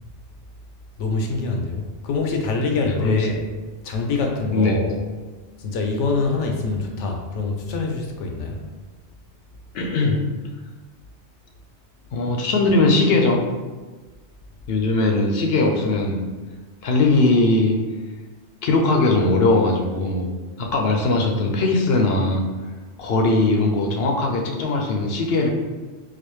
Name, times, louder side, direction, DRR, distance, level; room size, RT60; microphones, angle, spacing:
voice 1, 1.0-3.5 3.8-5.0 5.6-8.6, left 3 dB, 85° left, 2 dB, 1.0 m, -25 dB
voice 2, 2.8-3.3 4.5-4.8 9.7-10.2 12.1-13.4 14.7-16.2 16.8-17.8 18.6-20.3 20.6-22.4 23.0-25.5, left 2 dB, 65° left, 1 dB, 0.7 m, -20 dB
4.0 x 2.5 x 3.1 m, 1.3 s
omnidirectional pair, 1.2 m